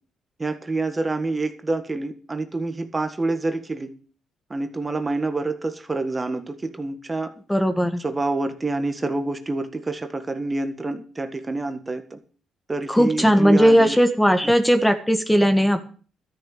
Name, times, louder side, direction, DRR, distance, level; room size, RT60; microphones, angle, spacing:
voice 1, 0.4-3.9 4.5-7.3 8.0-12.2 12.7-14.0 14.4-14.5, right 2 dB, 20° right, 8 dB, 1.6 m, -27 dB
voice 2, 7.5-8.0 12.9-15.8, equal, 5° left, 8 dB, 1.6 m, -18 dB
13.0 x 6.9 x 8.7 m, 0.41 s
cardioid pair, 90°, 0 cm